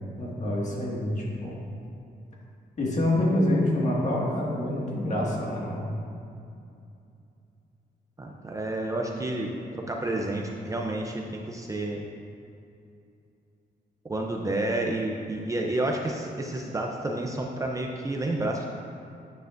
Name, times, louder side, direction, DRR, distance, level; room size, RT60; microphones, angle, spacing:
voice 1, 0.2-1.5 2.8-5.9, left 1 dB, 45° left, -4 dB, 1.8 m, -26 dB
voice 2, 8.2-12.0 14.0-18.7, right 1 dB, 20° right, 0 dB, 0.5 m, -30 dB
9.3 x 9.2 x 2.5 m, 2.6 s
wide cardioid pair, 160°, 17 cm